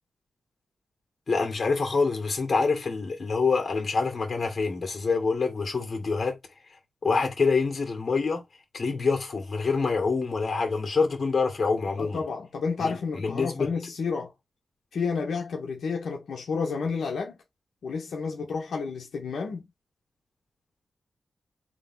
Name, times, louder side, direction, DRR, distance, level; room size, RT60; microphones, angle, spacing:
voice 1, 1.3-6.4 7.0-8.4 8.7-12.2 12.8-13.7, left 4 dB, 45° left, 2.3 m, -26 dB
voice 2, 12.0-14.3 14.9-17.4 17.8-19.7, left 5 dB, 90° left, 1.1 m, -30 dB
3.7 x 3.3 x 3.8 m
wide cardioid pair, 110°, 0 cm